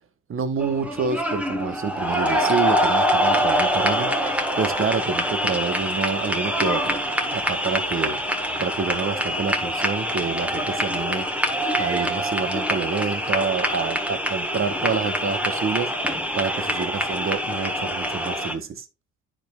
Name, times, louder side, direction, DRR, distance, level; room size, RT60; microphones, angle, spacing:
voice 1, 0.3-4.1 4.6-7.0 7.3-8.2 8.6-11.3 11.8-15.9 16.3-18.9, right 5 dB, 45° right, 1.1 m, -27 dB
sound 1, 0.6-18.5, equal, 5° right, 1.4 m, -25 dB
10.5 x 5.0 x 2.3 m
cardioid pair, 90°, 30 cm